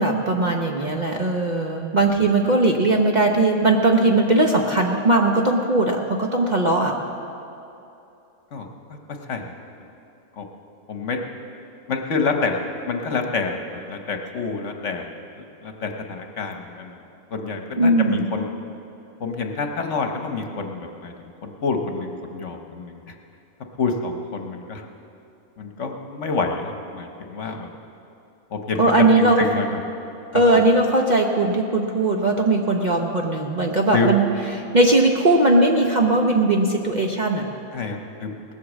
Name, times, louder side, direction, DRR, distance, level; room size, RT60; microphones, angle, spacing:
voice 1, 0.0-7.0 17.8-18.2 28.8-29.4 30.3-34.4 34.7-37.5, right 2 dB, 35° right, 1 dB, 0.8 m, -19 dB
voice 2, 8.5-9.0 9.3-9.5 10.4-10.5 10.9-11.2 11.9-15.1 15.6-16.9 17.3-18.5 19.2-21.1 21.4-23.0 23.8-24.8 25.6-27.7 28.5-29.8 33.9-34.1 37.7-38.4, left 4 dB, 55° left, 4 dB, 1.3 m, -27 dB
18.5 x 8.2 x 7.3 m, 2.8 s
omnidirectional pair, 1.5 m